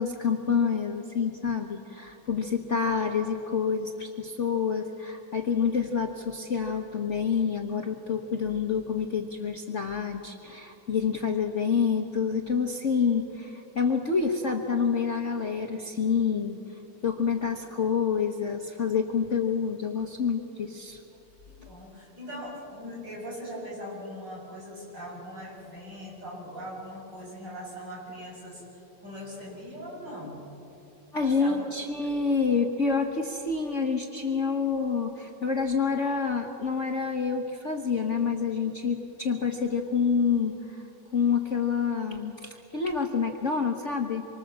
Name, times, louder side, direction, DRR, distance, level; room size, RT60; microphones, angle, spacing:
voice 1, 0.0-16.6 17.0-21.0 31.1-40.8 41.1-44.2, left 6 dB, 40° left, 2 dB, 1.3 m, -27 dB
voice 2, 21.7-30.4 31.2-31.6 32.0-32.1, equal, 50° right, -3 dB, 7.9 m, -40 dB
26.5 x 24.5 x 7.4 m, 2.9 s
omnidirectional pair, 2.4 m